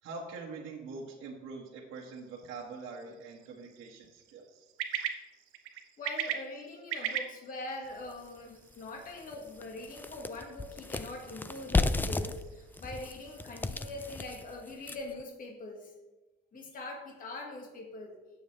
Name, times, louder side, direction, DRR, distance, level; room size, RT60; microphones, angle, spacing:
voice 1, 0.0-4.7 16.5-16.6, right 4 dB, 65° right, -3 dB, 1.6 m, -44 dB
sound 1, 1.9-13.6, right 9 dB, 85° right, 1.0 m, -42 dB
voice 2, 6.0-15.9 16.5-18.1, left 2 dB, 40° left, 0 dB, 1.8 m, -43 dB
sound 2, 8.1-8.2 8.7-8.8 9.2-15.2, left 3 dB, 10° left, 0.3 m, -34 dB
16.0 x 7.1 x 3.3 m, 1.1 s
cardioid pair, 135°, 21 cm